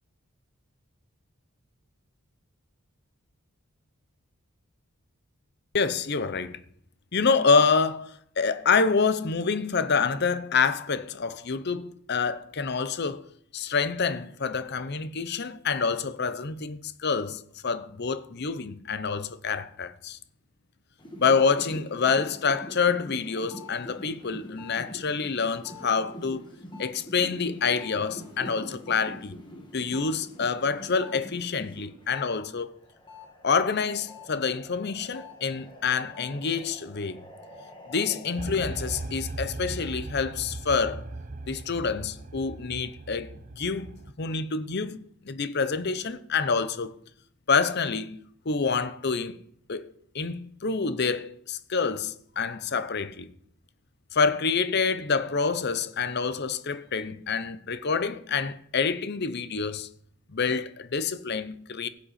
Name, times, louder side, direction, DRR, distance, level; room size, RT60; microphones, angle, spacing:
voice 1, 5.7-6.6 7.1-13.3 13.5-20.2 21.2-26.4 26.8-29.3 29.7-32.7 33.4-37.2 37.9-41.0 41.5-43.9 44.2-46.9 47.5-49.4 49.7-53.3 54.1-59.9 60.3-61.9, left 5 dB, 50° left, 0.7 m, -27 dB
sound 1, 21.0-32.3 32.6-39.0, left 1 dB, 20° left, 1.7 m, -44 dB
sound 2, 38.4-44.1, right 2 dB, 35° right, 0.7 m, -38 dB
16.0 x 8.4 x 4.2 m
head